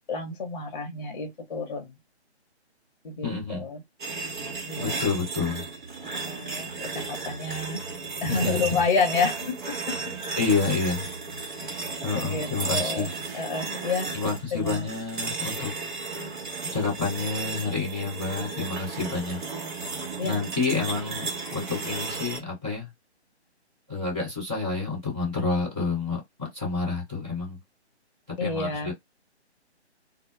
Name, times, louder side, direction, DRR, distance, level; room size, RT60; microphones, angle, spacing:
voice 1, 0.1-2.0 3.0-3.8 4.7-5.1 6.0-10.0 11.5-14.1 14.5-14.9 20.2-20.4 28.4-28.9, left 4 dB, 40° left, 0.7 m, -30 dB
voice 2, 3.2-3.6 4.8-5.6 8.2-8.8 10.4-11.1 12.0-13.1 14.1-15.7 16.7-19.4 20.2-22.9 23.9-27.6 28.4-28.9, left 4 dB, 5° right, 0.5 m, -29 dB
sound 1, 4.0-22.4, right 4 dB, 45° right, 0.9 m, -34 dB
2.0 x 2.0 x 3.0 m
hypercardioid pair, 165°, 34 cm